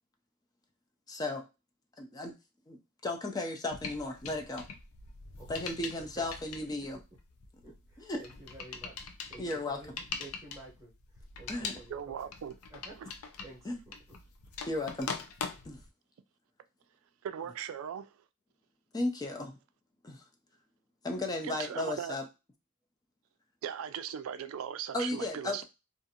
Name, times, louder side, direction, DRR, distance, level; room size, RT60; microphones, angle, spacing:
voice 1, 1.1-1.5 2.0-2.3 2.7-4.7 5.5-7.0 8.0-8.2 9.4-9.8 11.5-11.8 13.6-13.8 14.7-15.1 15.6-15.8 18.9-19.6 20.0-20.2 21.0-22.2 24.9-25.6, left 2 dB, 20° left, 0.4 m, -35 dB
sound 1, 3.7-15.9, left 5 dB, 90° left, 0.5 m, -43 dB
voice 2, 5.9-6.3 7.6-8.9 9.3-10.9 11.4-12.3 12.7-13.0 13.4-13.9 14.6-14.7, right 2 dB, 15° right, 0.8 m, -51 dB
voice 3, 11.9-12.5 17.2-18.1 21.4-22.2 23.6-25.6, right 8 dB, 75° right, 0.3 m, -38 dB
2.5 x 2.4 x 2.7 m
head